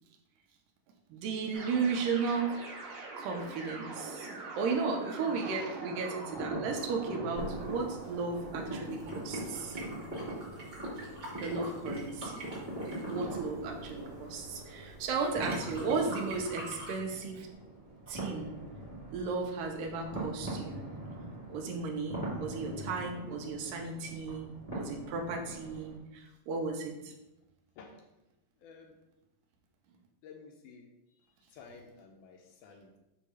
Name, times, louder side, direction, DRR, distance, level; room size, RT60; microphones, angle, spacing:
voice 1, 1.1-2.5 3.2-4.3 4.6-9.8 11.4-12.4 13.1-17.5 18.1-18.5 19.1-20.8 21.5-27.2, right 4 dB, 85° right, 3 dB, 2.4 m, -35 dB
sound 1, 1.5-9.6, right 3 dB, 65° right, 1.3 m, -44 dB
sound 2, 6.3-25.9, right 1 dB, 30° left, 0.6 m, -41 dB
sound 3, 7.3-17.0, right 1 dB, 40° right, 1.8 m, -47 dB
voice 2, 27.8-28.1 28.6-29.0 30.2-30.9 31.5-33.0, left 5 dB, 75° left, 2 dB, 2.0 m, -52 dB
6.6 x 2.7 x 5.7 m, 0.95 s
omnidirectional pair, 3.9 m